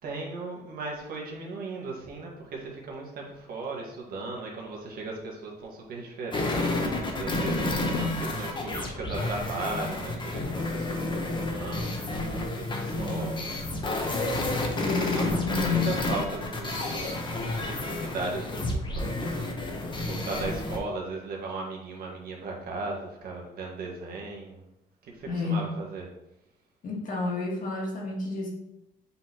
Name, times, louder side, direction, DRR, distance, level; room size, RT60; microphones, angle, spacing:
voice 1, 0.0-11.9 12.3-14.2 14.7-19.7 20.1-24.6 25.0-26.1, right 3 dB, 60° right, -1 dB, 1.8 m, -37 dB
sound 1, 6.3-20.8, left 2 dB, 30° left, 1.1 m, -30 dB
voice 2, 7.9-8.2 13.0-13.3 14.8-15.9 25.2-25.7 26.8-28.5, left 4 dB, 50° left, -2 dB, 1.9 m, -30 dB
7.7 x 4.1 x 3.0 m, 0.88 s
cardioid pair, 110°, 17 cm